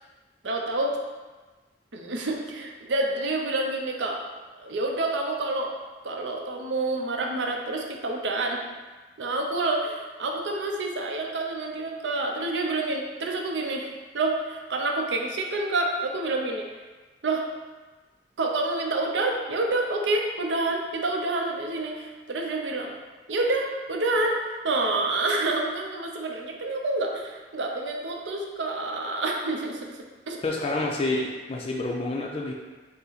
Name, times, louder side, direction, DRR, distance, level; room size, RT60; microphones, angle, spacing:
voice 1, 0.4-1.0 1.9-4.2 4.6-5.7 6.0-8.6 9.2-16.6 17.2-17.4 18.4-22.9 23.3-29.8 30.3-30.4, right 2 dB, 80° right, 1 dB, 0.6 m, -28 dB
voice 2, 30.4-32.5, left 2 dB, 30° left, -1 dB, 0.4 m, -28 dB
5.4 x 2.0 x 3.9 m, 1.3 s
head